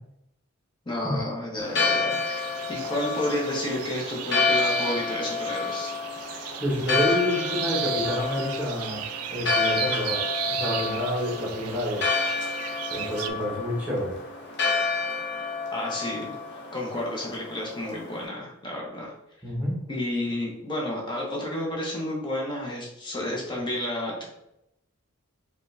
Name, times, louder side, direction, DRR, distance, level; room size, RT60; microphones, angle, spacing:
voice 1, 0.8-2.2 2.7-6.0 15.7-19.1 19.9-24.3, left 1 dB, 20° left, -3 dB, 1.0 m, -31 dB
Church bell, 1.6-18.2, left 4 dB, 50° left, 0.8 m, -29 dB
sound 1, 2.1-13.3, right 10 dB, 90° right, 0.4 m, -35 dB
voice 2, 6.2-9.0 9.3-10.2 10.5-12.1 12.9-14.1 19.4-19.8, left 1 dB, 5° right, -5 dB, 1.0 m, -28 dB
5.0 x 2.4 x 3.2 m, 0.83 s
head